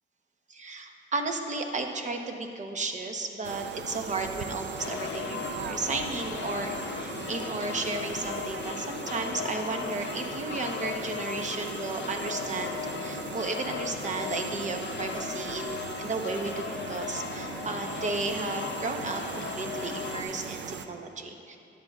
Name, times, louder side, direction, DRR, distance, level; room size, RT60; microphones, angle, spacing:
voice 1, 0.5-21.6, right 3 dB, 35° right, 4 dB, 0.9 m, -34 dB
sound 1, 3.4-20.9, right 6 dB, 65° right, 0.5 m, -39 dB
sound 2, 4.8-20.2, left 8 dB, 65° left, 0.5 m, -38 dB
12.5 x 10.5 x 2.4 m, 2.6 s
cardioid pair, 90°, 20 cm